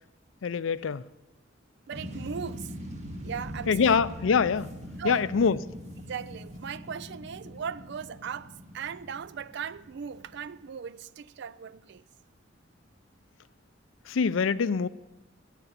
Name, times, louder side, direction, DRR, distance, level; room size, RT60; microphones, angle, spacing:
voice 1, 0.4-1.1 3.7-4.7 5.0-5.6 14.1-14.9, left 5 dB, 85° left, 0.5 m, -24 dB
sound 1, 1.9-10.6, equal, 35° right, 1.9 m, -42 dB
voice 2, 1.9-2.7 3.2-4.1 5.0-5.3 6.1-12.0, right 7 dB, 60° right, 0.4 m, -38 dB
9.6 x 9.1 x 9.2 m
head